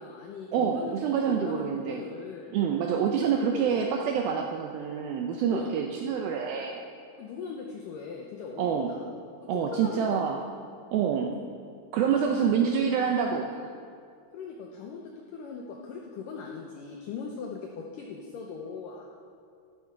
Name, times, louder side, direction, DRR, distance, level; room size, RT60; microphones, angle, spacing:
voice 1, 0.0-0.9 1.3-2.6 3.2-3.9 4.4-4.5 5.5-5.7 7.2-9.0 9.5-10.4 12.0-12.8 14.3-19.1, left 5 dB, 85° left, 0 dB, 1.9 m, -40 dB
voice 2, 0.5-2.0 2.5-6.8 8.6-8.9 9.5-10.4 10.9-11.3 11.9-13.7, right 7 dB, 80° right, 2 dB, 2.1 m, -27 dB
13.5 x 11.0 x 4.6 m, 2.3 s
omnidirectional pair, 5.0 m